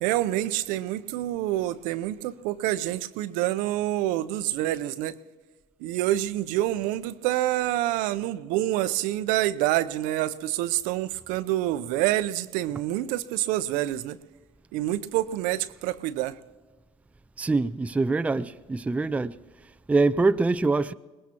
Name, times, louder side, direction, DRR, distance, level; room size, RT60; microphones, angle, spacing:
voice 1, 0.0-5.2 5.8-14.2 14.7-16.4, right 14 dB, 70° right, 0.6 m, -27 dB
voice 2, 17.4-19.4 19.9-20.9, right 3 dB, 10° right, 0.4 m, -24 dB
23.0 x 20.0 x 2.9 m
supercardioid pair, 85°, 14 cm